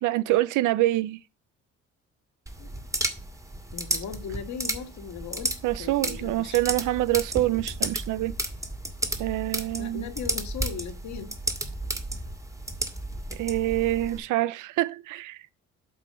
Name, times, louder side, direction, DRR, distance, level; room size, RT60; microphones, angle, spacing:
voice 1, 0.0-1.2 5.6-8.3 9.2-10.0 13.3-15.4, right 16 dB, 85° right, 0.6 m, -26 dB
sound 1, 2.5-14.2, right 1 dB, 10° right, 1.8 m, -33 dB
voice 2, 3.7-6.6 9.8-11.3, left 7 dB, 70° left, 1.7 m, -38 dB
8.0 x 4.8 x 5.1 m
cardioid pair, 90°, 30 cm